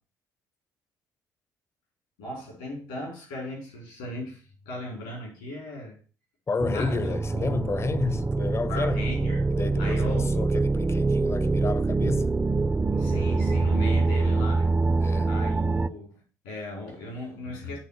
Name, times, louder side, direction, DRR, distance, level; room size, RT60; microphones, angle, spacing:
voice 1, 2.2-6.0 6.7-7.1 8.7-9.5 9.8-10.3 12.9-14.7 15.3-17.8, left 1 dB, 85° left, 4.4 m, -37 dB
voice 2, 6.5-9.1 9.5-12.4 15.0-15.3, left 4 dB, 30° left, 0.6 m, -31 dB
sound 1, 6.6-15.9, right 3 dB, 20° right, 0.5 m, -25 dB
8.0 x 3.9 x 6.4 m
hypercardioid pair, 50°, 9 cm